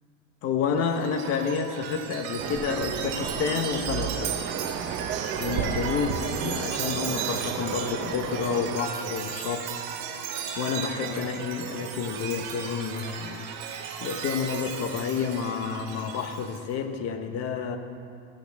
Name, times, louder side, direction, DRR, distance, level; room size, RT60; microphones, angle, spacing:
voice 1, 0.4-4.5 5.4-9.7 10.6-13.4 14.0-17.8, left 6 dB, 40° left, 6 dB, 1.2 m, -29 dB
Chime, 0.8-16.6, right 7 dB, 55° right, 1.7 m, -35 dB
sound 1, 2.4-8.8, right 8 dB, 30° right, 0.7 m, -33 dB
16.0 x 15.5 x 3.5 m, 2.4 s
cardioid pair, 160°, 38 cm